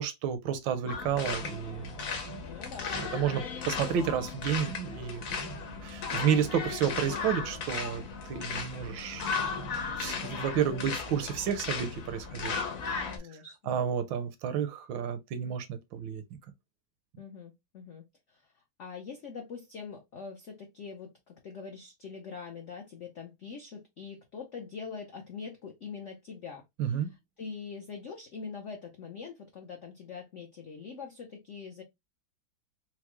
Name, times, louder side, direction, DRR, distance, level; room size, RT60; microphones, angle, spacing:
voice 1, 0.0-2.0 2.3-2.4 2.9-5.5 5.8-12.6 13.7-16.2 26.8-27.1, right 8 dB, 80° right, 1.3 m, -31 dB
sound 1, 0.9-13.2, left 5 dB, 55° left, 1.1 m, -36 dB
voice 2, 2.4-2.9 13.0-13.7 17.2-27.1 27.4-31.8, left 5 dB, 75° left, 0.6 m, -43 dB
4.5 x 2.0 x 3.0 m
omnidirectional pair, 2.1 m